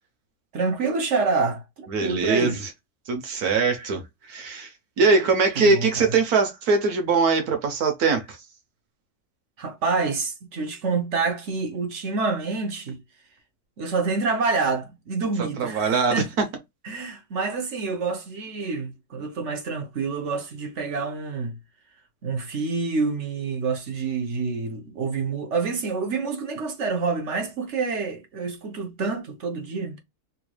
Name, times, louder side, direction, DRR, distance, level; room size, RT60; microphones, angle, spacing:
voice 1, 0.5-2.6 5.6-6.1 9.6-13.0 13.8-16.3 16.8-21.6 22.2-30.0, right 4 dB, 55° right, 1.0 m, -27 dB
voice 2, 1.9-2.7 3.1-4.0 4.3-4.7 5.0-8.4 15.4-16.2, right 4 dB, 70° right, 1.3 m, -22 dB
4.0 x 3.1 x 2.3 m
omnidirectional pair, 1.7 m